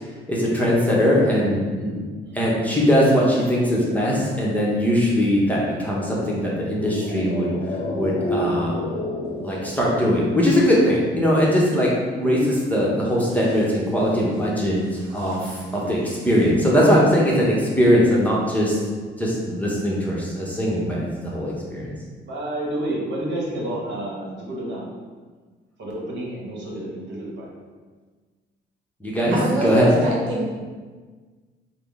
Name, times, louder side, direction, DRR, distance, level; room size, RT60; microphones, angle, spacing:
voice 1, 0.3-2.0 2.3-7.5 7.9-8.7 9.4-18.8 19.2-21.9 29.0-29.9, equal, 10° left, -5 dB, 0.8 m, -20 dB
sound 1, 6.6-11.2 11.4-11.5, left 1 dB, 35° left, 0.8 m, -30 dB
voice 2, 15.0-15.6 29.3-30.5, right 2 dB, 80° right, -3 dB, 0.8 m, -28 dB
voice 3, 22.3-24.9 25.8-27.5, right 1 dB, 60° right, -4 dB, 1.1 m, -30 dB
3.5 x 2.1 x 3.6 m, 1.4 s
cardioid pair, 90°, 20 cm